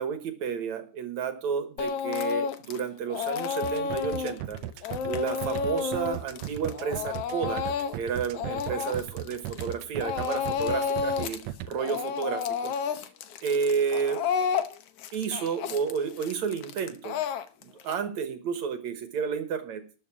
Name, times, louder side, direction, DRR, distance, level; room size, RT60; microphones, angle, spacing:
voice 1, 0.0-4.6 5.0-7.6 7.9-11.4 11.7-13.0 13.4-14.2 15.1-17.2 17.6-19.8, right 6 dB, 65° right, 8 dB, 2.4 m, -31 dB
Speech / Crying sobbing, 1.8-2.8 3.1-9.7 10.0-11.4 11.7-17.9, left 6 dB, 70° left, 1.5 m, -31 dB
sound 1, 3.6-11.7, right 12 dB, 80° right, 1.5 m, -36 dB
13.0 x 5.4 x 8.6 m, 0.37 s
omnidirectional pair, 3.8 m